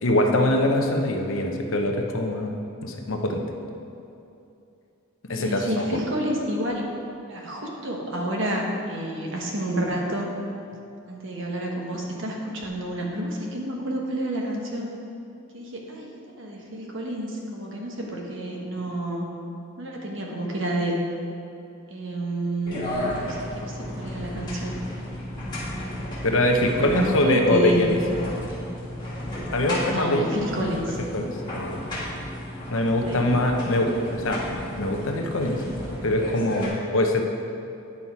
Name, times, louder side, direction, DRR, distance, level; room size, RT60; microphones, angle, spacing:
voice 1, 0.0-3.4 5.2-6.0 26.2-28.0 29.5-30.3 31.1-31.8 32.7-34.4 34.8-35.6 36.0-37.2, left 1 dB, 65° left, 3 dB, 0.8 m, -23 dB
voice 2, 5.3-6.8 7.3-10.3 11.1-14.9 15.5-16.1 16.4-19.2 19.8-21.0 21.9-24.8 25.7-26.3 26.8-27.9 29.9-31.0 33.1-33.3, right 1 dB, 55° right, -1 dB, 1.2 m, -29 dB
sound 1, 22.7-36.7, left 1 dB, 20° left, 2.0 m, -33 dB
9.8 x 5.7 x 4.6 m, 2.7 s
head